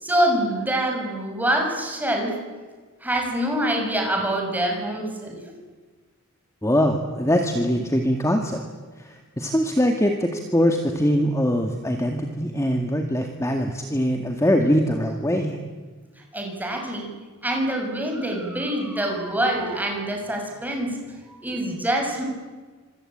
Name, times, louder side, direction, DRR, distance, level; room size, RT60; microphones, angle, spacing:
voice 1, 0.0-2.3 3.0-5.6 16.3-17.1 17.4-21.0 21.3-22.2, right 1 dB, 10° right, 1 dB, 6.3 m, -25 dB
voice 2, 6.6-8.6 9.0-15.6, equal, 15° left, 3 dB, 2.0 m, -22 dB
26.5 x 25.0 x 8.8 m, 1.4 s
head